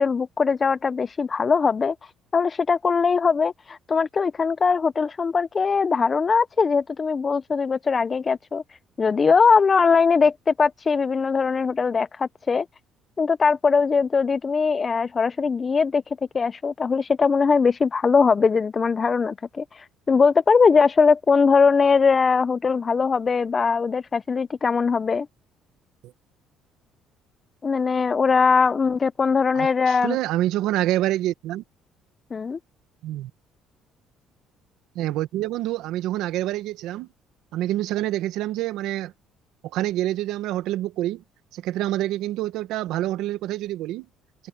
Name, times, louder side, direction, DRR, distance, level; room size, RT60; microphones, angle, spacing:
voice 1, 0.0-8.6 9.0-12.7 13.2-25.3 27.6-30.2 32.3-32.6, left 5 dB, 35° left, 0.6 m, -21 dB
voice 2, 29.5-31.6 33.0-33.3 34.9-37.1 37.5-39.1 39.7-41.2 41.5-44.1, right 14 dB, 80° right, 1.6 m, -27 dB
open air
supercardioid pair, 85°, 0 cm